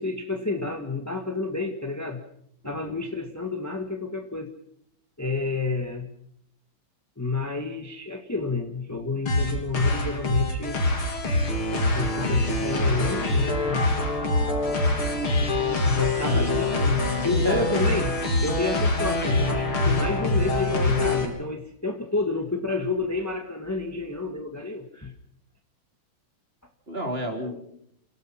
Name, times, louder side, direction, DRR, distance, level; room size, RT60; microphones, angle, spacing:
voice 1, 0.0-2.2 2.6-4.5 5.2-6.1 7.2-10.8 11.9-13.9 15.9-25.1, left 3 dB, 10° left, 4 dB, 1.6 m, -30 dB
voice 2, 2.6-3.0 16.2-16.5 17.4-17.7 26.9-27.6, right 1 dB, 25° right, 4 dB, 3.6 m, -31 dB
sound 1, 9.3-21.3, left 2 dB, 75° left, 4.1 m, -24 dB
28.5 x 17.5 x 5.9 m, 0.72 s
omnidirectional pair, 2.4 m